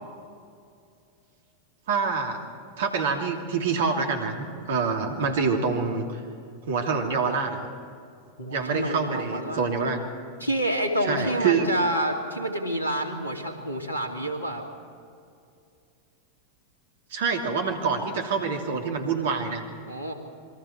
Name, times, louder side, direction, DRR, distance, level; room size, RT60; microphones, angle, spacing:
voice 1, 1.9-2.5 2.8-6.2 6.7-7.6 8.5-10.0 11.0-11.7 17.1-19.6, right 5 dB, 55° right, 3 dB, 2.7 m, -26 dB
voice 2, 8.4-9.7 10.4-14.6 19.9-20.1, right 1 dB, 85° left, 3 dB, 2.7 m, -28 dB
27.5 x 22.5 x 4.6 m, 2.4 s
figure-of-eight pair, 90°, 0 cm